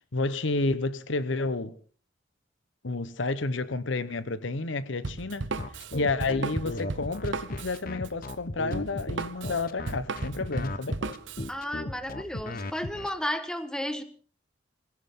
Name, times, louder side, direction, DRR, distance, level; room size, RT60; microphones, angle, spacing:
voice 1, 0.1-1.8 2.8-5.5 5.9-11.0, left 3 dB, 70° left, 0.9 m, -30 dB
Drum kit, 5.0-11.5, right 3 dB, 70° right, 0.8 m, -35 dB
sound 1, 5.6-13.1, left 2 dB, 50° left, 1.1 m, -36 dB
voice 2, 11.5-14.0, equal, 5° left, 1.3 m, -33 dB
22.0 x 16.5 x 3.7 m
head